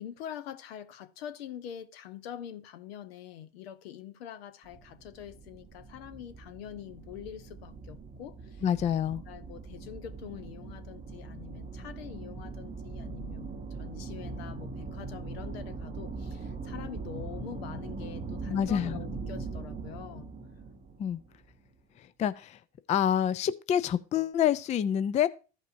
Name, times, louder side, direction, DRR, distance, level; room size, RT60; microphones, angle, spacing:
voice 1, 0.0-8.6 9.3-20.3, left 10 dB, 75° left, 0.9 m, -44 dB
sound 1, 4.6-21.7, right 4 dB, 20° right, 0.8 m, -41 dB
voice 2, 8.6-9.2 18.5-19.0 21.0-21.2 22.0-22.6 22.9-25.3, left 9 dB, 25° left, 0.4 m, -27 dB
14.0 x 5.4 x 2.6 m
hypercardioid pair, 80°, 31 cm